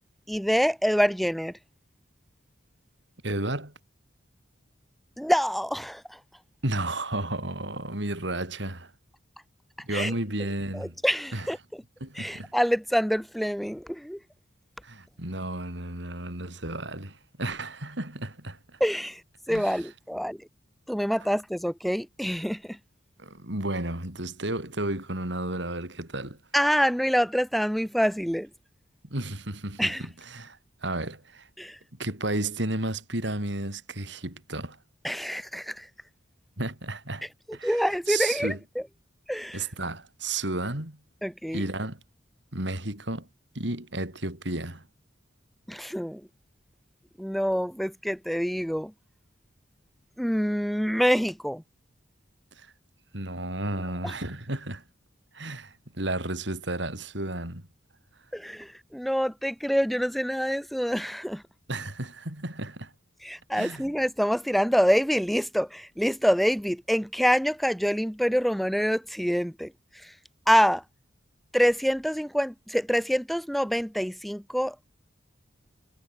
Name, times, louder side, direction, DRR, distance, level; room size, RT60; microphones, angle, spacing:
voice 1, 0.3-1.5 5.2-6.2 9.9-10.1 10.7-11.6 12.1-14.2 18.8-19.2 19.5-20.4 20.9-22.8 26.5-28.5 29.8-30.0 31.6-31.8 35.0-35.9 37.6-38.8 39.3-39.6 41.2-41.6 45.7-46.2 47.2-48.9 50.2-51.6 54.0-54.1 58.3-61.4 63.2-69.7 70.0-70.1 70.5-70.8 71.5-74.7, equal, ahead, 1.6 m, -26 dB
voice 2, 3.2-3.7 6.6-8.9 9.8-10.9 11.3-11.5 12.0-12.5 14.8-18.8 19.5-19.9 23.2-26.4 29.1-31.5 32.0-34.8 36.6-38.6 39.5-41.0 41.5-42.0 42.5-43.3 43.5-44.8 52.5-52.7 53.1-54.8 55.3-57.7 61.7-62.9 63.5-63.9, right 2 dB, 65° right, 4.6 m, -33 dB
head